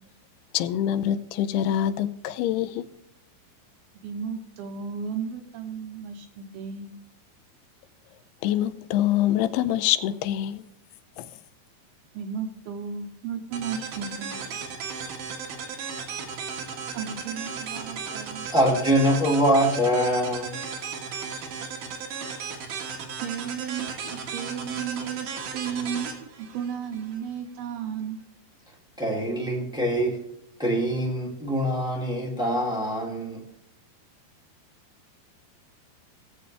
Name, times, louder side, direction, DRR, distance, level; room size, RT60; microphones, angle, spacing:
voice 1, 0.5-2.9 8.4-10.6 11.2-11.3, left 11 dB, 80° left, 2.6 m, -25 dB
voice 2, 4.0-6.9 12.1-14.6 16.9-18.5 23.2-28.2, right 7 dB, 75° right, 2.5 m, -34 dB
sound 1, 13.5-27.2, right 6 dB, 60° right, 2.7 m, -35 dB
voice 3, 18.5-20.5 29.0-30.2 30.6-33.4, equal, ahead, 1.1 m, -24 dB
18.0 x 7.6 x 3.4 m
omnidirectional pair, 4.8 m